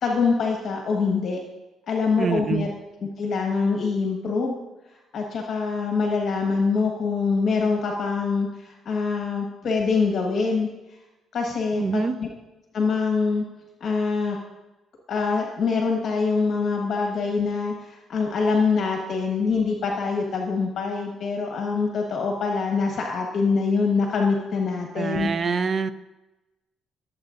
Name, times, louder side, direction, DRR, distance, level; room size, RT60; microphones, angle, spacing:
voice 1, 0.0-1.4 1.9-2.7 3.0-4.6 5.1-10.7 11.3-12.3 12.7-13.4 13.8-14.4 15.1-25.3, left 4 dB, 45° left, 1 dB, 1.3 m, -24 dB
voice 2, 2.2-2.7 11.8-12.2 25.0-25.9, right 4 dB, 30° right, 12 dB, 0.4 m, -25 dB
21.0 x 7.7 x 2.5 m, 1.0 s
cardioid pair, 175°, 0 cm